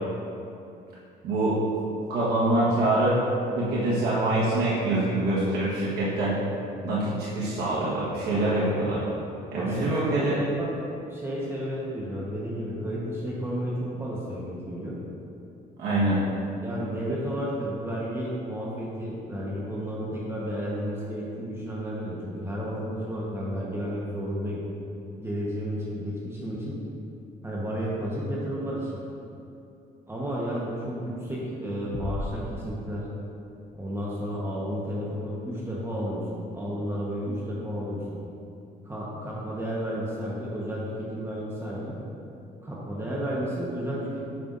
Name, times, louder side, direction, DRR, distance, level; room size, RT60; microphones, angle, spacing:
voice 1, 1.2-1.6 2.1-3.2 3.6-6.4 6.8-9.0 9.5-10.4 15.8-16.2, right 2 dB, 70° right, -8 dB, 1.4 m, -25 dB
voice 2, 9.6-10.7 11.1-14.9 15.9-16.2 16.6-24.6 25.2-26.8 27.4-29.0 30.1-33.0 33.8-38.2 38.8-41.9 42.6-44.2, equal, 15° right, -6 dB, 1.1 m, -32 dB
sound 1, 31.9-33.7, left 3 dB, 25° left, 0.5 m, -36 dB
9.2 x 5.5 x 2.6 m, 2.7 s
cardioid pair, 110°, 17 cm